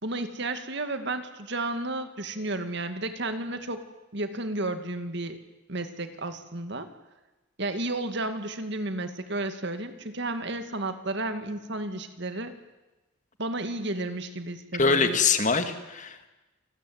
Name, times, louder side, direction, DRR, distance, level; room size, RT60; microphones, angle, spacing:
voice 1, 0.0-3.9 4.1-5.4 5.7-6.9 7.6-12.5 13.4-15.2, right 2 dB, 55° right, 9 dB, 2.2 m, -32 dB
voice 2, 14.8-16.3, left 4 dB, 35° left, 8 dB, 2.1 m, -24 dB
28.5 x 19.5 x 9.5 m, 1.1 s
head